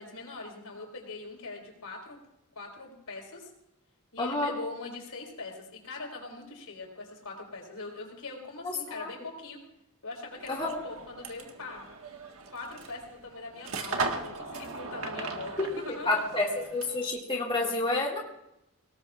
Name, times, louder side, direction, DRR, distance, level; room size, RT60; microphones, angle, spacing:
voice 1, 0.0-2.2 2.5-3.5 4.1-9.6 10.0-11.8 12.5-15.5 16.0-16.1, left 3 dB, 80° left, 0 dB, 4.5 m, -42 dB
voice 2, 4.2-4.5 8.6-9.1 10.5-10.8 15.6-15.7 16.0-18.2, left 2 dB, 25° left, -3 dB, 2.4 m, -29 dB
sound 1, 10.3-17.1, right 3 dB, 70° right, 1.6 m, -38 dB
24.5 x 18.5 x 2.5 m, 0.87 s
head